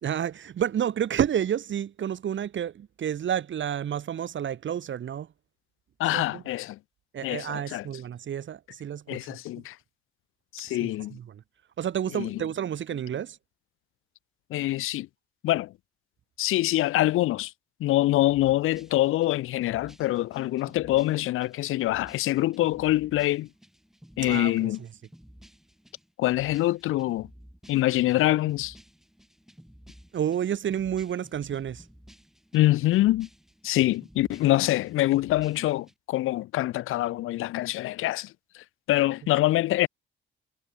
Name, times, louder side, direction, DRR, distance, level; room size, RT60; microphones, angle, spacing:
voice 1, 0.0-5.3 6.1-6.4 7.1-9.4 10.8-11.4 11.8-13.4 24.2-24.9 30.1-31.8, right 9 dB, 65° right, 3.9 m, -30 dB
voice 2, 6.0-6.8 7.2-7.9 9.1-9.7 10.5-11.2 12.1-12.4 14.5-15.1 15.4-15.7 16.4-17.5 17.8-23.5 24.2-24.8 26.2-27.3 27.7-28.7 32.5-33.3 33.6-38.3 38.9-39.9, left 16 dB, 85° left, 0.5 m, -25 dB
sound 1, 18.2-35.9, equal, ahead, 7.7 m, -53 dB
cardioid pair, 95°, 21 cm